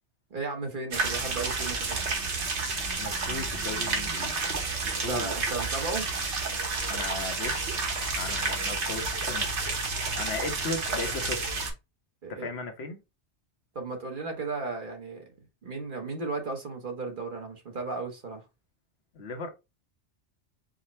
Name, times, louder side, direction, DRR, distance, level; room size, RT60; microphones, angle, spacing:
voice 1, 0.3-2.3 5.1-6.1 12.2-12.5 13.7-15.2 15.6-18.4, right 3 dB, 50° right, 1.2 m, -35 dB
sound 1, 0.9-11.7, right 3 dB, 75° right, 1.4 m, -30 dB
voice 2, 3.0-4.4 4.8-5.4 6.9-7.6 8.1-9.5 10.2-11.5 12.3-13.0 19.1-19.5, left 3 dB, 65° left, 1.1 m, -36 dB
4.9 x 2.1 x 4.2 m
omnidirectional pair, 1.2 m